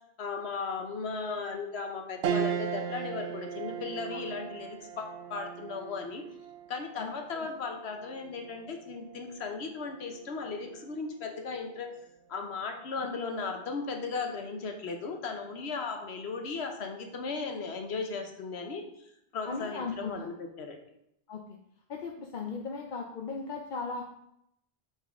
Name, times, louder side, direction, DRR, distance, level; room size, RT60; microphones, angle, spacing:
voice 1, 0.2-6.2 6.7-11.9 12.3-18.8 19.3-20.8, left 4 dB, 80° left, 4 dB, 1.2 m, -36 dB
sound 1, 2.2-11.8 12.3-12.4 13.7-14.2, right 8 dB, 80° right, 0.9 m, -38 dB
voice 2, 7.0-7.5 13.3-13.4 19.4-20.1 21.3-21.4 21.9-24.0, left 4 dB, 55° left, 1 dB, 0.7 m, -37 dB
8.2 x 4.1 x 3.6 m, 0.78 s
omnidirectional pair, 1.1 m